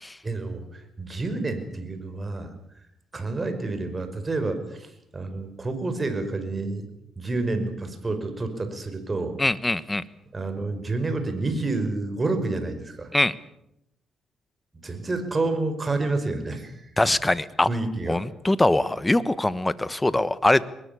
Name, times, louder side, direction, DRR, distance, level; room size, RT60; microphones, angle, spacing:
voice 1, 0.2-2.5 3.1-6.9 7.2-9.4 10.3-13.1 14.8-16.7 17.7-18.2, right 3 dB, 25° right, 8 dB, 5.4 m, -29 dB
voice 2, 9.4-10.0 13.1-13.3 17.0-17.7 18.1-20.6, left 2 dB, 15° left, 16 dB, 1.3 m, -22 dB
23.0 x 20.5 x 8.4 m, 0.80 s
cardioid pair, 90°, 0 cm